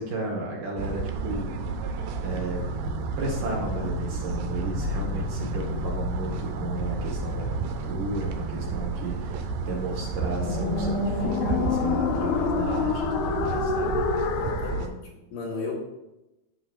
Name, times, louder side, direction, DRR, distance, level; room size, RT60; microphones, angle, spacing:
voice 1, 0.0-1.5 2.2-14.0, right 2 dB, 65° right, -2 dB, 2.4 m, -34 dB
sound 1, 0.8-14.9, right 5 dB, 85° right, 1.9 m, -32 dB
sound 2, 1.6-14.9, left 5 dB, 90° left, 2.6 m, -31 dB
voice 2, 14.4-15.7, left 4 dB, 70° left, -1 dB, 2.4 m, -35 dB
14.0 x 5.7 x 2.3 m, 0.98 s
omnidirectional pair, 4.4 m